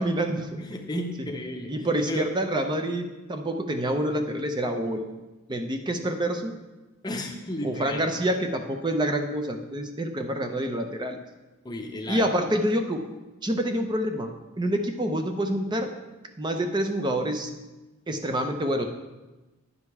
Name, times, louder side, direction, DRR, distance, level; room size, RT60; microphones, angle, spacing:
voice 1, 0.0-0.5 1.7-5.2 5.5-6.5 7.6-11.2 12.1-13.0 13.4-14.3 14.6-15.9 16.4-17.5 18.1-18.8, right 1 dB, 20° right, 6 dB, 0.6 m, -27 dB
voice 2, 0.6-2.3 7.0-8.1 11.6-12.3, left 1 dB, 20° left, 3 dB, 0.7 m, -33 dB
9.9 x 5.1 x 4.7 m, 1.1 s
head